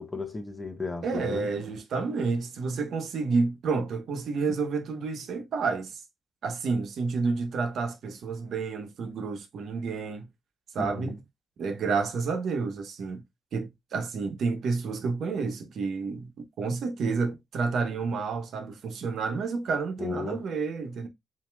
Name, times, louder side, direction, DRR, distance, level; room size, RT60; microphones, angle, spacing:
voice 1, 0.0-1.5 10.8-11.1 20.0-20.4, left 3 dB, 20° left, 0.7 m, -34 dB
voice 2, 1.0-6.0 6.4-10.3 10.7-11.2 11.6-13.2 13.5-16.3 16.6-21.1, right 4 dB, 70° right, 1.0 m, -30 dB
7.2 x 2.8 x 2.2 m
cardioid pair, 110°, 0 cm